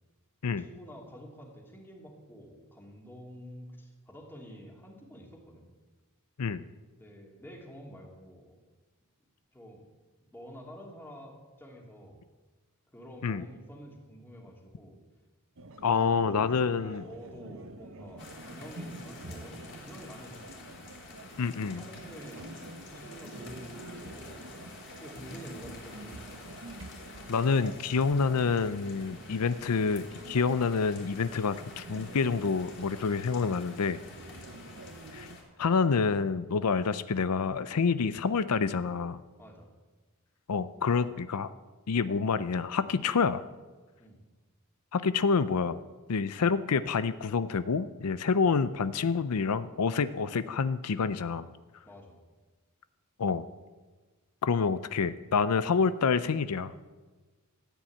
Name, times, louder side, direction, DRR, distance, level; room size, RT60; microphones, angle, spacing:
voice 1, 0.6-5.7 7.0-8.6 9.5-9.8 10.2-12.2 12.9-15.0 15.8-20.5 21.5-22.4 22.9-24.7 25.0-26.4 34.3-34.6 39.4-39.7 44.0-44.2 48.3-48.4 51.9-52.2, equal, 10° left, 0 dB, 2.7 m, -48 dB
sound 1, 15.6-35.4, right 2 dB, 60° right, 1.0 m, -47 dB
voice 2, 15.8-17.0 21.4-21.8 27.3-34.0 35.1-35.3 35.6-39.2 40.5-41.5 41.9-43.4 44.9-45.8 46.1-51.5 53.2-53.5 54.4-56.8, left 5 dB, 85° left, 14 dB, 0.6 m, -27 dB
sound 2, 18.2-35.4, left 3 dB, 55° left, 4.1 m, -49 dB
14.0 x 9.2 x 8.6 m, 1.3 s
head